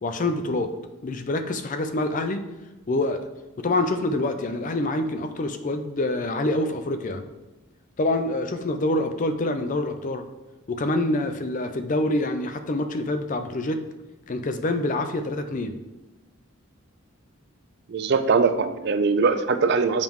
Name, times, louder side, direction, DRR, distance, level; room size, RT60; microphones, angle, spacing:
voice 1, 0.0-0.7 1.0-2.4 2.9-3.2 3.6-7.2 8.0-10.3 10.7-13.8 14.3-15.7, left 2 dB, 35° left, 8 dB, 0.4 m, -26 dB
voice 2, 17.9-20.0, right 4 dB, 50° right, 9 dB, 0.4 m, -21 dB
7.3 x 4.5 x 3.6 m, 1.1 s
head